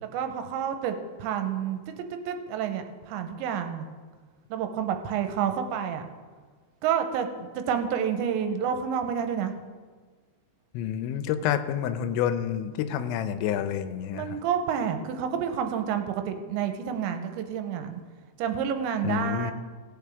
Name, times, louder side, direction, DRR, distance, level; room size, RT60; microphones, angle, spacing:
voice 1, 0.0-1.9 2.3-3.9 4.5-6.1 6.8-9.5 14.1-18.0 18.4-19.5, right 8 dB, 90° right, 7 dB, 3.1 m, -29 dB
voice 2, 10.7-14.4 19.0-19.5, left 9 dB, 90° left, 10 dB, 3.1 m, -28 dB
17.5 x 8.8 x 3.5 m, 1.5 s
omnidirectional pair, 5.2 m